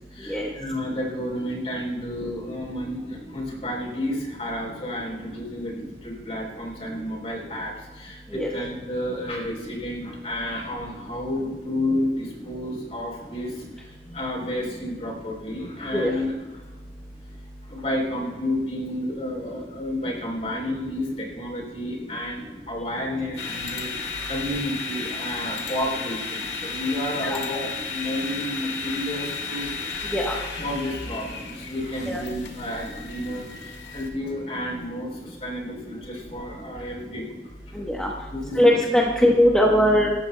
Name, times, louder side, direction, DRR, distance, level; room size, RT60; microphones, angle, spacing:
voice 1, 0.1-16.3 17.7-30.1 30.6-37.3 38.3-38.8, left 1 dB, 35° left, -2 dB, 3.6 m, -31 dB
sound 1, 23.4-34.1, left 4 dB, 70° left, 1.8 m, -34 dB
voice 2, 37.8-38.1 38.5-40.1, equal, 5° left, -3 dB, 1.0 m, -20 dB
25.5 x 13.0 x 2.2 m, 1.2 s
head